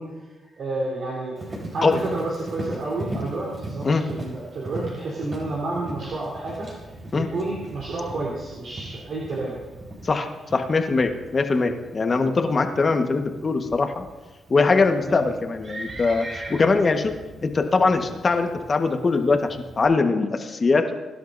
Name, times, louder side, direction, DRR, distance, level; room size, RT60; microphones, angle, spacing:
voice 1, 0.0-1.4 1.7-6.7 7.2-9.6 15.0-15.3, right 2 dB, 65° right, -6 dB, 3.7 m, -30 dB
Livestock farm animals working animals, 1.4-19.9, right 1 dB, 40° right, 4.4 m, -39 dB
voice 2, 10.0-14.0 14.5-17.1 17.4-20.9, left 4 dB, 40° left, 5 dB, 1.4 m, -22 dB
22.5 x 11.5 x 2.7 m, 1.2 s
cardioid pair, 85°, 0 cm